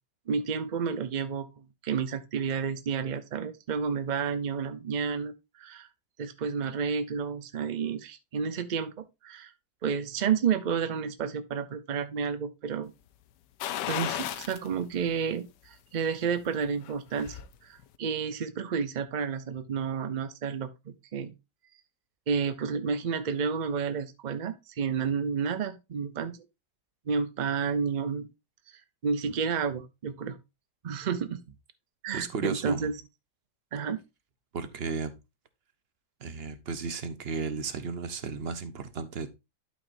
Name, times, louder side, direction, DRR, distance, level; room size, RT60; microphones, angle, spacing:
voice 1, 0.3-5.9 6.2-9.5 9.8-12.9 13.9-21.3 22.3-26.4 27.1-28.3 28.7-30.4 30.8-31.4 32.0-32.9 33.7-34.0, right 6 dB, 70° right, 0.4 m, -31 dB
sound 1, 13.6-14.7 15.1-15.2 16.7-17.5 17.8-17.9, left 11 dB, 85° left, 1.3 m, -34 dB
voice 2, 32.1-32.9 34.5-35.2 36.2-39.3, right 5 dB, 45° right, 0.9 m, -34 dB
12.0 x 5.2 x 2.5 m
omnidirectional pair, 1.8 m